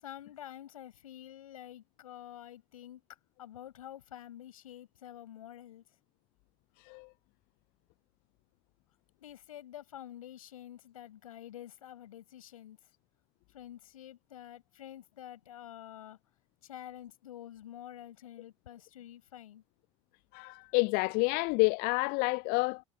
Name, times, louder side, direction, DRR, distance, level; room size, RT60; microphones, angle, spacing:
voice 1, 0.0-3.0 3.4-5.8 9.2-12.8 13.5-16.2 16.6-19.6, left 12 dB, 80° left, 7.2 m, -48 dB
voice 2, 6.8-7.1 20.3-22.8, left 30 dB, 60° left, 0.4 m, -29 dB
hypercardioid pair, 60°, 18 cm